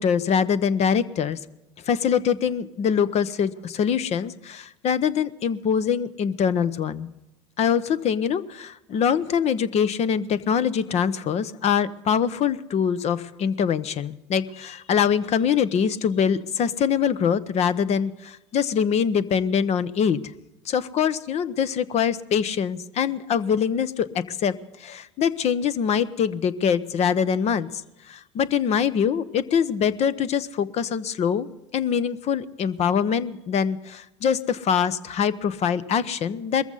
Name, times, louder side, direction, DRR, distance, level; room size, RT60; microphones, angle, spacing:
voice 1, 0.0-1.4 1.9-7.1 7.6-20.2 20.6-24.5 24.8-27.8 28.1-36.6, left 7 dB, 45° left, 16 dB, 0.9 m, -24 dB
21.0 x 14.5 x 4.0 m, 0.93 s
hypercardioid pair, 70°, 15 cm